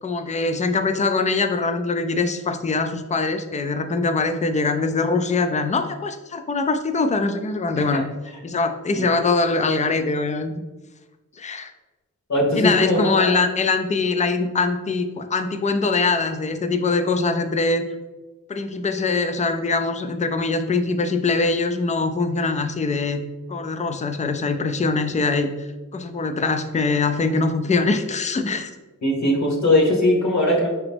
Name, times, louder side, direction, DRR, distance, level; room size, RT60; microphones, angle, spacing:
voice 1, 0.0-8.0 8.4-10.5 11.4-11.7 12.5-17.8 18.5-23.2 23.5-25.5 25.9-28.7, left 3 dB, 25° left, 8 dB, 0.3 m, -23 dB
voice 2, 12.3-13.2 29.0-30.7, left 1 dB, 55° left, -1 dB, 1.2 m, -19 dB
4.8 x 2.9 x 3.4 m, 1.2 s
wide cardioid pair, 90°, 33 cm